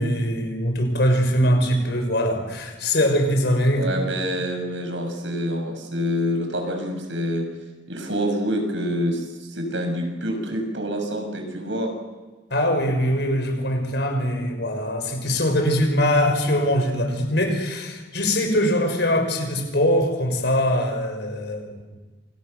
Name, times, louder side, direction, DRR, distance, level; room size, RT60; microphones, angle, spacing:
voice 1, 0.0-3.9 12.5-21.8, equal, 65° left, 5 dB, 6.2 m, -22 dB
voice 2, 3.7-7.4 7.9-11.9, equal, 85° right, 4 dB, 7.3 m, -27 dB
28.5 x 27.5 x 6.9 m, 1.2 s
head